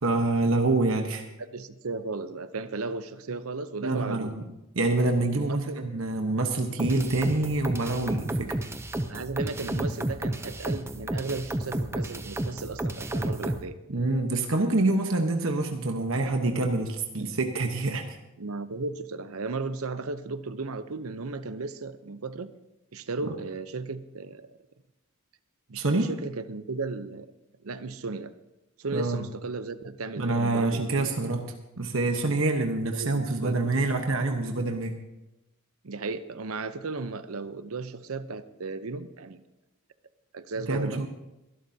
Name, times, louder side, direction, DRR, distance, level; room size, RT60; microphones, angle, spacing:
voice 1, 0.0-1.3 3.8-4.4 4.7-8.5 13.9-18.2 25.8-26.1 28.9-29.2 30.2-31.5 31.8-35.0 40.7-41.1, right 2 dB, 65° right, 4 dB, 1.1 m, -26 dB
voice 2, 1.4-4.3 5.4-5.9 9.1-13.7 18.4-22.5 22.9-24.6 25.7-27.3 27.6-28.3 28.8-31.2 32.9-33.7 35.8-39.4 40.3-41.1, right 3 dB, 85° right, 12 dB, 0.8 m, -35 dB
sound 1, 6.8-13.6, right 1 dB, 10° right, 0.6 m, -31 dB
23.0 x 12.0 x 2.8 m, 0.95 s
head